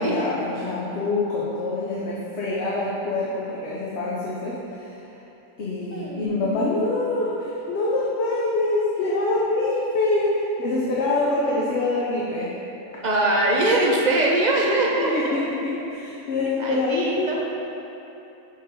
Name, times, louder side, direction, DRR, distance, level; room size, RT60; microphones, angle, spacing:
voice 1, 0.0-5.0 5.6-12.5 15.0-17.4, left 2 dB, 55° left, -6 dB, 0.9 m, -25 dB
voice 2, 5.9-6.4 13.0-15.4 16.6-17.4, right 2 dB, 55° right, -3 dB, 0.5 m, -22 dB
6.4 x 3.8 x 5.2 m, 3.0 s
omnidirectional pair, 1.5 m